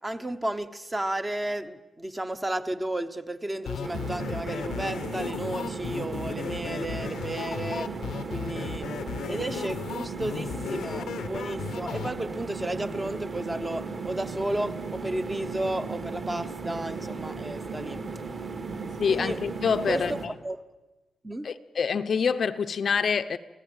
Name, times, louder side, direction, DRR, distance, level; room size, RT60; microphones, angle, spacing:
voice 1, 0.0-7.9 8.3-8.9 9.3-18.0 19.1-19.4 19.9-20.2 20.4-20.6 21.2-21.5, right 1 dB, 10° right, 1.0 m, -33 dB
sound 1, 3.7-12.1, left 8 dB, 80° left, 0.9 m, -35 dB
sound 2, 3.8-20.3, right 4 dB, 35° right, 2.4 m, -36 dB
voice 2, 19.0-20.1 21.4-23.4, left 6 dB, 45° left, 0.7 m, -26 dB
27.5 x 17.0 x 9.0 m
wide cardioid pair, 180°, 0 cm